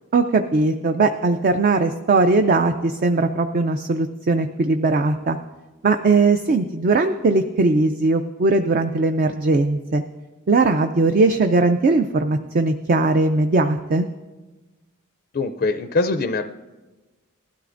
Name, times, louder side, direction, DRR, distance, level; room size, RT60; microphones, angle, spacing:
voice 1, 0.1-5.4 5.8-10.0 10.5-14.1, right 3 dB, 40° right, 7 dB, 0.4 m, -19 dB
voice 2, 15.3-16.4, left 3 dB, 40° left, 8 dB, 0.4 m, -22 dB
18.5 x 12.5 x 2.5 m, 1.2 s
head